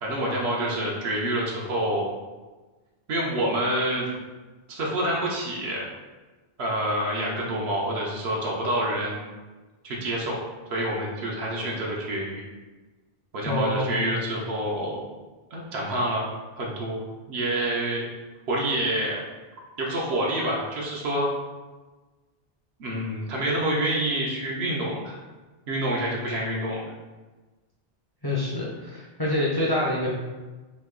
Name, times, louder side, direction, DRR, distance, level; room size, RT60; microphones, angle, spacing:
voice 1, 0.0-2.1 3.1-4.1 4.7-5.8 6.6-9.2 9.8-10.4 10.7-12.4 13.3-15.0 15.5-16.3 16.6-17.0 17.3-18.0 18.5-19.2 19.8-21.3 22.8-25.2 25.7-26.8, right 1 dB, 85° right, -3 dB, 0.9 m, -27 dB
voice 2, 13.5-14.0 28.2-30.1, left 1 dB, 35° left, -5 dB, 0.4 m, -26 dB
3.0 x 2.6 x 3.6 m, 1.3 s
omnidirectional pair, 1.1 m